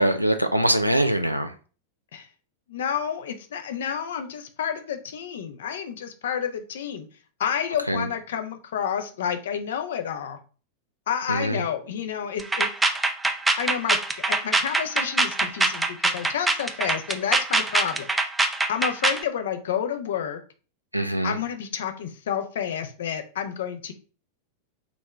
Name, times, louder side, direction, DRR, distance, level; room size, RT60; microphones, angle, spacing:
voice 1, 0.0-1.5 7.9-8.0 11.3-11.6 20.9-21.3, right 1 dB, 90° right, 8 dB, 0.3 m, -23 dB
voice 2, 2.7-7.1 7.4-10.4 11.1-12.7 13.6-14.0 14.3-18.1 18.7-20.4 21.2-23.9, left 8 dB, 60° left, 8 dB, 0.6 m, -29 dB
sound 1, 12.4-19.2, right 2 dB, 10° right, 0.5 m, -23 dB
4.0 x 3.0 x 3.4 m, 0.37 s
figure-of-eight pair, 90°, 0 cm